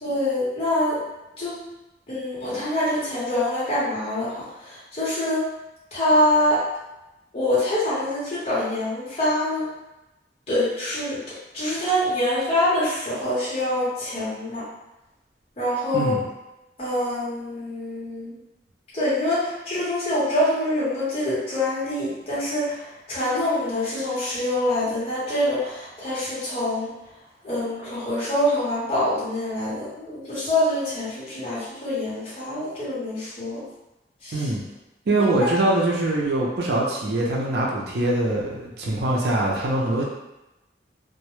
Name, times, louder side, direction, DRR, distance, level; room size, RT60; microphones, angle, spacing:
voice 1, 0.0-1.0 1.4-1.6 2.1-5.4 5.9-6.7 7.3-9.7 10.5-14.6 15.6-16.2 16.8-18.3 18.9-26.9 27.4-33.6 34.2-34.4, left 1 dB, 35° left, -10 dB, 0.8 m, -25 dB
voice 2, 35.1-40.0, right 1 dB, 60° right, -4 dB, 0.4 m, -23 dB
2.1 x 2.0 x 2.9 m, 0.96 s
head